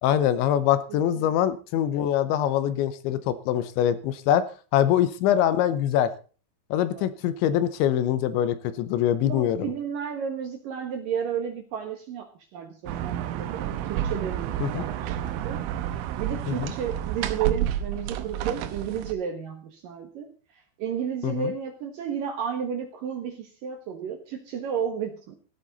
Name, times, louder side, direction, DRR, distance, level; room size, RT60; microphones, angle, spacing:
voice 1, 0.0-4.4 4.7-6.1 6.7-9.7 14.6-14.8 16.5-16.7 21.2-21.5, left 11 dB, 80° left, 13 dB, 3.1 m, -24 dB
voice 2, 0.9-1.4 6.9-7.1 9.2-15.6 15.9-20.3 20.5-25.4, right 8 dB, 65° right, 6 dB, 2.3 m, -33 dB
sound 1, 12.9-19.1, right 11 dB, 85° right, 3.4 m, -30 dB
15.0 x 13.0 x 4.0 m, 0.37 s
omnidirectional pair, 5.5 m